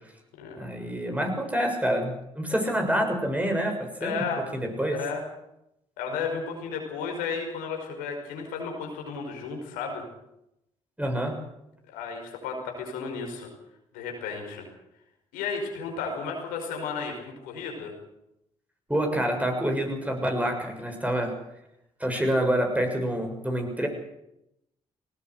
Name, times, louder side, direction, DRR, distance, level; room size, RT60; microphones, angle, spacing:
voice 1, 0.6-4.2 4.5-5.0 11.0-11.4 18.9-21.3 22.0-23.9, equal, 10° right, 3 dB, 7.1 m, -27 dB
voice 2, 4.0-4.4 4.9-5.2 6.0-10.0 11.9-13.5 13.9-14.6 15.3-17.9, left 5 dB, 85° left, 2 dB, 5.3 m, -33 dB
19.0 x 19.0 x 8.1 m, 0.84 s
hypercardioid pair, 50°, 14 cm